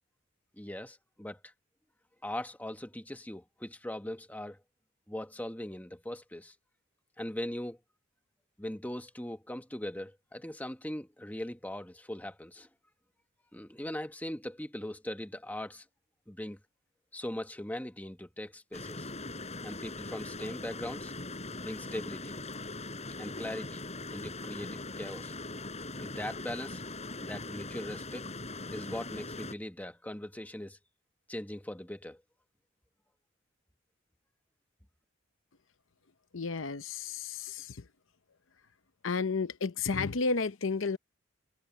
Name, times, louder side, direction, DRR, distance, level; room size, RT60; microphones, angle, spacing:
voice 1, 0.6-1.5 2.2-4.6 5.1-6.5 7.2-7.8 8.6-12.7 13.5-15.8 16.3-16.6 17.1-19.1 19.6-21.1 21.6-22.4 23.2-23.8 24.1-25.3 26.0-26.8 27.2-28.3 28.7-30.8 31.3-32.2, left 1 dB, 10° left, 1.5 m, -40 dB
sound 1, 18.7-29.5, left 2 dB, 35° left, 7.3 m, -41 dB
voice 2, 36.3-37.7 39.0-41.0, left 4 dB, 70° left, 0.8 m, -32 dB
head